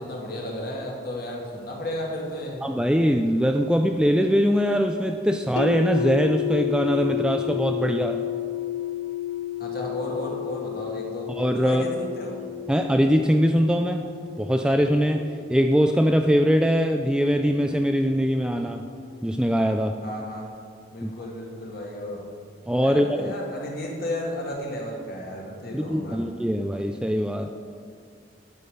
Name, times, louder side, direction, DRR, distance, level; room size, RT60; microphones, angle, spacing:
voice 1, 0.0-2.6 9.6-12.4 20.0-20.5 20.9-22.3 22.8-26.3, left 1 dB, 50° left, -2 dB, 2.0 m, -33 dB
voice 2, 2.6-8.2 11.3-11.9 12.7-14.0 14.4-15.2 15.5-18.8 19.2-20.0 21.0-21.1 22.7-23.3 25.7-27.5, equal, 5° right, 5 dB, 0.3 m, -22 dB
sound 1, 5.6-17.5, left 11 dB, 90° left, 0.5 m, -32 dB
11.0 x 7.0 x 6.4 m, 2.2 s
head